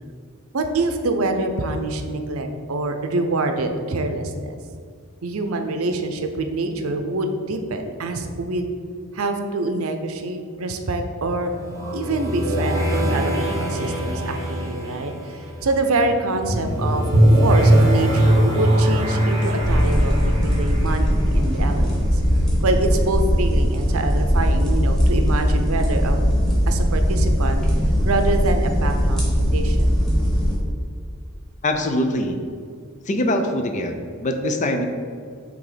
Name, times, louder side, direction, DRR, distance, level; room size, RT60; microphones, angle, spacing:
voice 1, 0.5-4.6 5.2-8.7 9.1-11.5 11.9-17.0 17.4-22.2 22.6-26.2 26.7-27.6 28.0-29.9, right 2 dB, 75° right, 6 dB, 0.6 m, -25 dB
sound 1, 11.2-22.0, right 1 dB, 20° right, 1.4 m, -21 dB
sound 2, 19.6-30.6, equal, 5° left, 1.3 m, -20 dB
voice 2, 31.6-32.4 33.1-34.9, left 1 dB, 35° left, 5 dB, 0.5 m, -23 dB
6.0 x 3.5 x 5.0 m, 2.1 s
head